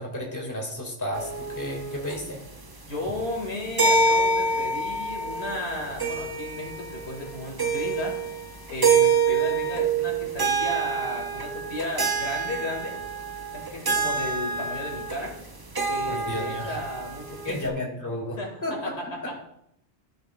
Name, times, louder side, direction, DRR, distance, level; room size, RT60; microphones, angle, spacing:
voice 1, 0.0-2.4 16.0-16.8 17.5-19.0 19.2-19.4, left 1 dB, 15° left, -1 dB, 1.9 m, -33 dB
sound 1, 1.1-17.7, right 4 dB, 25° right, 0.7 m, -27 dB
voice 2, 2.9-8.2 8.7-13.0 13.5-15.3 15.9-17.8 18.4-18.5 18.8-18.9, left 1 dB, 90° left, 0 dB, 2.1 m, -34 dB
13.0 x 6.9 x 2.2 m, 0.76 s
omnidirectional pair, 1.1 m